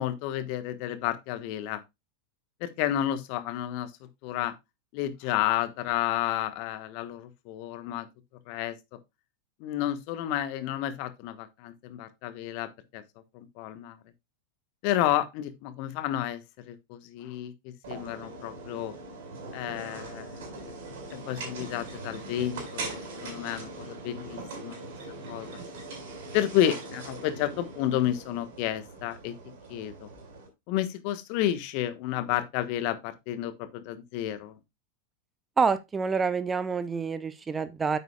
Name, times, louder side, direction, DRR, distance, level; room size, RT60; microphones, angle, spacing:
voice 1, 0.0-1.8 2.6-3.9 4.2-4.5 4.9-8.1 8.5-9.0 9.6-13.0 13.3-14.0 14.8-18.9 19.5-20.6 21.1-24.8 25.3-25.6 26.3-29.3 29.7-30.1 30.7-34.6, left 12 dB, 45° left, 1.2 m, -31 dB
sound 1, 17.8-30.5, right 2 dB, 55° right, 4.7 m, -41 dB
voice 2, 35.6-38.0, right 5 dB, 15° right, 0.8 m, -27 dB
9.2 x 8.3 x 2.3 m
figure-of-eight pair, 90°, 0 cm